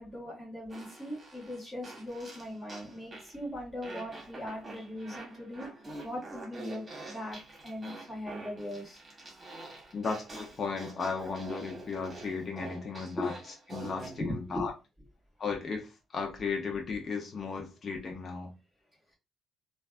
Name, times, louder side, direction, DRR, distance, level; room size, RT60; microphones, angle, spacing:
voice 1, 0.0-5.7 6.0-7.4 7.6-9.0 13.2-13.3 13.8-14.7, left 1 dB, 10° left, -4 dB, 1.8 m, -39 dB
Fart, 0.7-3.4 3.8-14.2, right 2 dB, 25° right, 1.4 m, -46 dB
voice 2, 9.9-14.7 15.4-18.5, left 5 dB, 45° left, 2 dB, 0.6 m, -35 dB
3.2 x 2.3 x 2.4 m, 0.27 s
cardioid pair, 90°, 0 cm